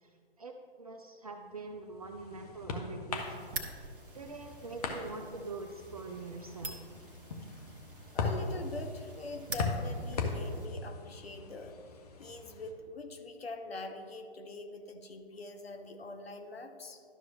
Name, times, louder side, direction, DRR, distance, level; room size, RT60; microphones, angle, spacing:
voice 1, 0.0-3.5 4.1-6.9, right 3 dB, 40° right, 4 dB, 0.4 m, -44 dB
sound 1, 1.6-12.7, left 3 dB, 40° left, 0.9 m, -40 dB
sound 2, 3.1-10.7, right 3 dB, 55° right, 1.1 m, -47 dB
voice 2, 8.1-11.8 12.2-17.0, left 2 dB, 70° left, 6 dB, 0.8 m, -43 dB
11.5 x 6.2 x 2.9 m, 2.2 s
figure-of-eight pair, 130°, 31 cm